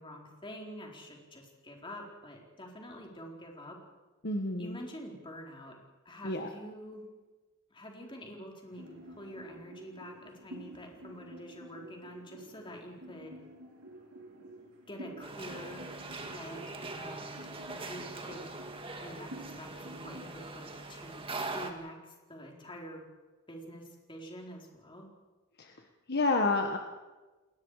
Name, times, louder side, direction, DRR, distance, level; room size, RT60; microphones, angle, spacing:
voice 1, 0.0-3.8 4.6-5.8 6.0-7.1 7.7-13.4 14.9-15.8 16.3-18.5 19.0-21.3 21.5-23.0 23.5-25.1, equal, 25° left, 0 dB, 4.3 m, -47 dB
voice 2, 4.2-4.8 6.2-6.5 26.1-26.8, left 3 dB, 50° left, 3 dB, 1.5 m, -29 dB
sound 1, 8.7-20.3, right 1 dB, 85° right, 5.1 m, -50 dB
sound 2, 15.2-21.7, right 2 dB, 25° right, 2.1 m, -42 dB
29.5 x 20.5 x 5.0 m, 1.2 s
head